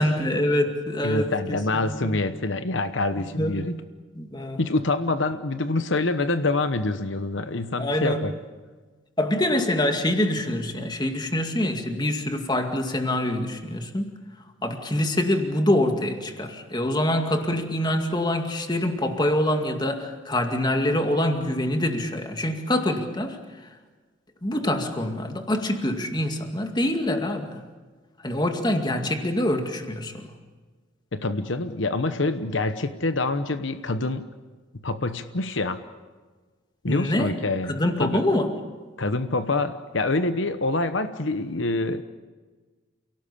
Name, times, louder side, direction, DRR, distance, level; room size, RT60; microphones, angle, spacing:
voice 1, 0.0-2.2 3.3-3.6 4.2-4.6 7.8-8.2 9.2-14.1 14.6-23.4 24.4-27.6 28.2-30.3 36.9-37.4 37.7-38.5, left 1 dB, 20° left, 5 dB, 2.2 m, -25 dB
voice 2, 1.0-3.8 4.6-8.3 31.1-34.3 34.7-35.8 36.8-38.2 39.0-42.0, left 2 dB, 75° left, 10 dB, 1.0 m, -26 dB
28.5 x 18.0 x 8.5 m, 1.4 s
head